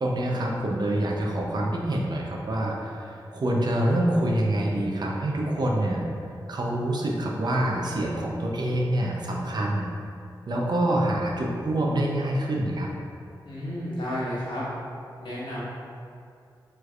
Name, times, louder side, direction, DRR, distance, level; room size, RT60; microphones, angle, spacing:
voice 1, 0.0-6.0 6.5-9.9 10.5-12.9, right 1 dB, 55° right, -2 dB, 0.5 m, -26 dB
voice 2, 13.4-14.6 15.2-15.6, equal, 65° left, -9 dB, 1.2 m, -32 dB
3.2 x 3.1 x 2.4 m, 2.4 s
cardioid pair, 50°, 9 cm